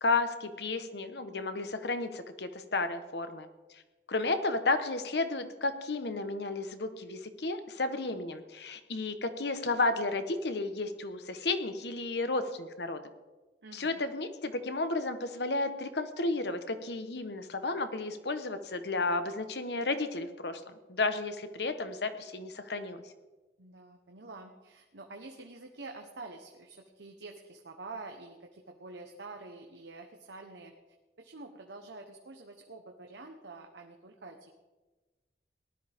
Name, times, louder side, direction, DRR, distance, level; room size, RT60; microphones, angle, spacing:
voice 1, 0.0-3.5 4.1-13.0 13.7-23.0, left 3 dB, 70° left, 9 dB, 1.1 m, -32 dB
voice 2, 13.6-14.1 23.6-30.7 31.2-34.5, right 3 dB, 85° right, 3 dB, 1.1 m, -47 dB
18.5 x 12.5 x 3.6 m, 1.2 s
head